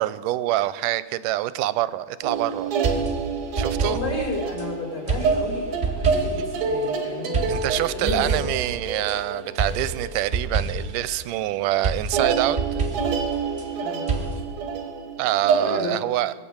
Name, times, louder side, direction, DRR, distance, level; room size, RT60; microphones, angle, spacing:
voice 1, 0.0-2.7 3.6-4.0 7.5-12.6 15.2-16.3, right 15 dB, 90° right, 15 dB, 2.2 m, -25 dB
sound 1, 2.2-11.0 11.3-11.7 12.1-15.7, right 5 dB, 60° right, 2.6 m, -28 dB
sound 2, 2.8-4.7 5.1-6.5 7.3-9.2 9.6-11.0 11.8-13.7 14.1-14.4, right 4 dB, 30° right, 1.7 m, -28 dB
voice 2, 3.8-7.4 7.9-8.3 13.8-14.3 15.6-15.9, left 3 dB, 20° left, -5 dB, 5.9 m, -32 dB
21.5 x 7.7 x 8.7 m, 1.4 s
omnidirectional pair, 3.7 m